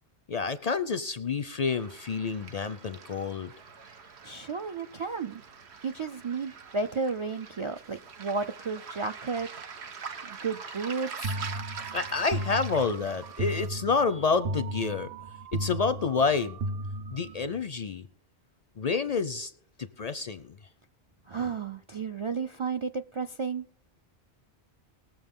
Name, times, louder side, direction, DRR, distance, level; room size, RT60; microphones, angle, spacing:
voice 1, 0.3-3.5 11.9-15.1 15.5-16.6 17.1-18.1 18.8-19.5 19.8-20.6, left 5 dB, 50° left, 13 dB, 0.5 m, -28 dB
Waves surf, 1.7-13.7, right 5 dB, 85° right, 1.2 m, -44 dB
voice 2, 4.2-5.4 5.8-9.5 10.2-11.4 21.3-23.6, right 4 dB, 50° right, 10 dB, 0.3 m, -33 dB
sound 1, 11.2-17.6, right 1 dB, 65° right, 0.9 m, -35 dB
20.5 x 7.2 x 3.6 m, 0.64 s
omnidirectional pair, 1.1 m